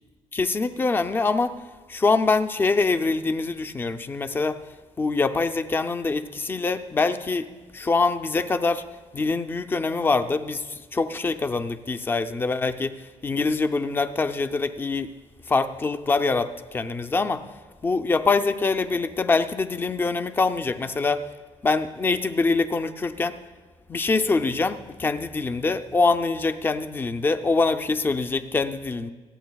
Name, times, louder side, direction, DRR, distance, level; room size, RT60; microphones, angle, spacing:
voice 1, 0.3-1.5 1.9-4.6 5.0-7.5 7.7-8.8 9.1-13.0 13.2-15.1 15.5-17.4 17.8-21.2 21.6-23.4 23.9-29.1, left 3 dB, 20° left, 10 dB, 0.4 m, -24 dB
25.5 x 8.9 x 2.3 m, 1.4 s
cardioid pair, 165°, 11 cm